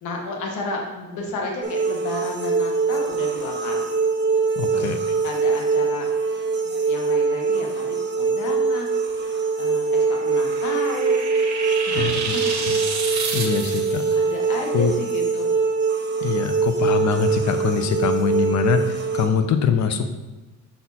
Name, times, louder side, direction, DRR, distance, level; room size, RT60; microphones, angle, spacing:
voice 1, 0.0-3.9 4.7-4.9 5.2-6.1 6.6-11.3 11.8-12.4 13.0-13.4 13.6-13.8 14.1-15.5, left 2 dB, 80° left, 1 dB, 1.2 m, -33 dB
sound 1, 1.6-19.3, right 4 dB, 35° right, 1.1 m, -23 dB
voice 2, 4.6-4.9 11.9-12.1 12.7-12.8 13.3-14.0 14.7-14.9 16.2-20.2, left 6 dB, 65° left, 9 dB, 0.7 m, -23 dB
sound 2, 10.0-14.2, right 5 dB, 65° right, 1.1 m, -30 dB
5.6 x 4.3 x 4.2 m, 1.1 s
cardioid pair, 90°, 30 cm